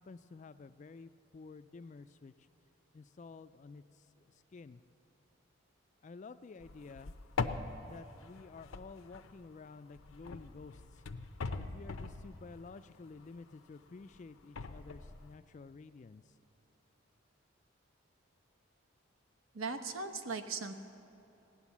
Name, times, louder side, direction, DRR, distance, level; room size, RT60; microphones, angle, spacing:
voice 1, 0.0-2.5 2.9-4.8 6.0-7.1 7.9-11.0 11.7-16.3, left 4 dB, 35° left, 13 dB, 0.3 m, -51 dB
sound 1, 6.6-9.6 9.9-13.4 13.8-15.3, left 4 dB, 85° left, 0.6 m, -42 dB
voice 2, 19.5-20.7, right 4 dB, 80° right, 5 dB, 1.0 m, -38 dB
17.0 x 9.7 x 7.2 m, 3.0 s
head